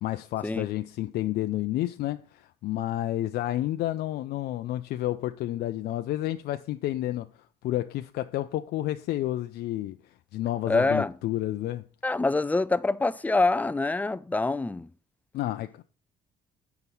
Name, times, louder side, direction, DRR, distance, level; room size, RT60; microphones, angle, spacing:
voice 1, 0.0-7.3 7.6-10.0 10.3-11.9 15.3-15.8, left 14 dB, 70° left, 0.5 m, -30 dB
voice 2, 10.7-11.1 12.0-14.9, left 3 dB, 10° left, 0.4 m, -25 dB
8.1 x 5.7 x 5.4 m
cardioid pair, 110°, 17 cm